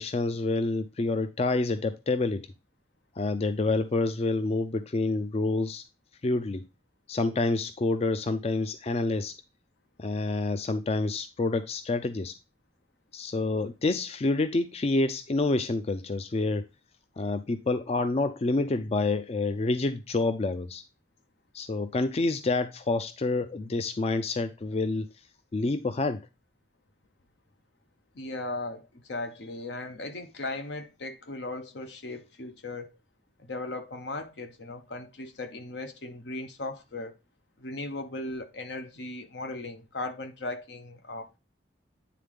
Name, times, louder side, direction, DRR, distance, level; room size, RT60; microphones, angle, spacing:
voice 1, 0.0-2.5 3.2-5.8 6.2-6.6 7.1-9.3 10.0-12.3 13.1-16.7 17.2-20.8 21.5-25.1 25.5-26.2, left 3 dB, 35° left, 0.4 m, -28 dB
voice 2, 28.1-33.0 33.4-37.1 37.6-41.4, left 2 dB, 80° left, 1.0 m, -37 dB
9.4 x 3.7 x 3.5 m
head